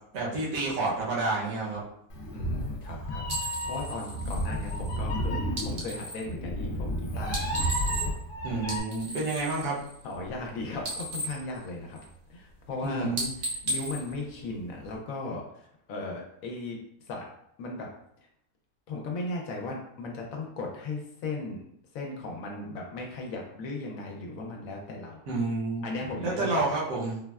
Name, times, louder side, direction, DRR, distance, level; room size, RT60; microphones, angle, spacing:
voice 1, 0.1-1.8 8.4-9.8 12.8-13.3 25.3-25.9 26.2-27.2, right 3 dB, 75° right, -4 dB, 1.2 m, -29 dB
Meow, 2.1-8.8, equal, 55° left, 0.6 m, -32 dB
voice 2, 2.3-7.6 9.0-9.3 10.0-12.0 12.3-13.1 13.4-16.8 17.1-17.3 17.6-17.9 18.9-21.6 21.9-25.2 25.8-26.7, left 2 dB, 75° left, 0 dB, 1.0 m, -37 dB
sound 1, 3.3-6.3 7.2-8.3 8.6-10.5 10.7-12.3 12.6-12.8 13.1-15.0, right 2 dB, 50° right, 0.5 m, -36 dB
3.9 x 2.1 x 2.3 m, 0.72 s
omnidirectional pair, 1.4 m